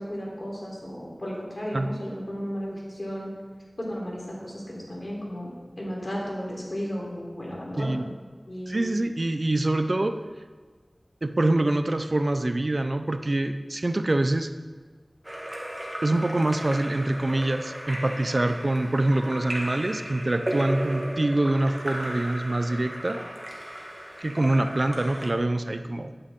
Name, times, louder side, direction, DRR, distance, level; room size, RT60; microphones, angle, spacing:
voice 1, 0.0-3.3 3.8-8.0 8.5-8.9, equal, 55° left, -4 dB, 3.6 m, -34 dB
voice 2, 8.7-10.2 11.2-14.5 16.0-23.2 24.2-26.1, right 2 dB, 55° right, 8 dB, 0.6 m, -25 dB
Splash splatter / Drip / Trickle dribble, 15.2-25.3, right 1 dB, 25° right, 1.6 m, -35 dB
12.5 x 9.0 x 3.7 m, 1.5 s
wide cardioid pair, 55°, 0 cm